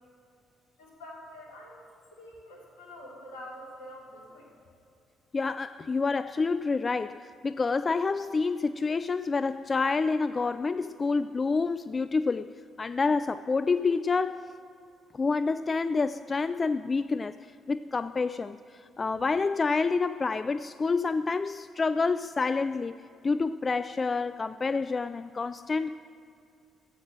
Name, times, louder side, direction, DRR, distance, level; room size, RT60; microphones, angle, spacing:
voice 1, 0.8-1.8 2.1-4.5, left 1 dB, 75° left, -2 dB, 2.8 m, -46 dB
voice 2, 5.3-12.5 12.8-14.5 15.1-17.4 17.7-22.9 23.2-26.0, left 4 dB, 35° left, 13 dB, 0.3 m, -28 dB
13.0 x 8.3 x 7.5 m, 2.5 s
figure-of-eight pair, 45°, 0 cm